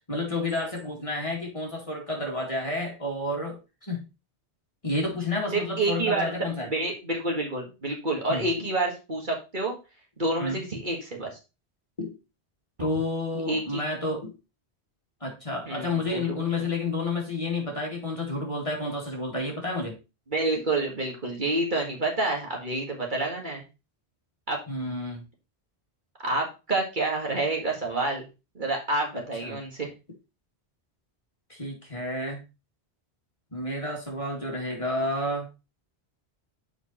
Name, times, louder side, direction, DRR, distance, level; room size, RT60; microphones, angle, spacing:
voice 1, 0.1-4.1 4.8-6.7 8.3-8.5 10.4-10.6 12.0-12.1 12.8-14.3 15.2-20.0 24.7-25.2 29.1-29.6 31.5-32.4 33.5-35.5, left 2 dB, 30° left, -1 dB, 2.4 m, -30 dB
voice 2, 5.5-6.3 6.6-9.8 10.2-11.3 13.5-13.8 15.7-15.9 16.1-16.4 20.3-23.6 24.5-24.6 26.2-28.2 28.6-29.9, right 2 dB, 45° right, 0 dB, 2.0 m, -28 dB
7.1 x 5.2 x 4.3 m, 0.28 s
omnidirectional pair, 1.1 m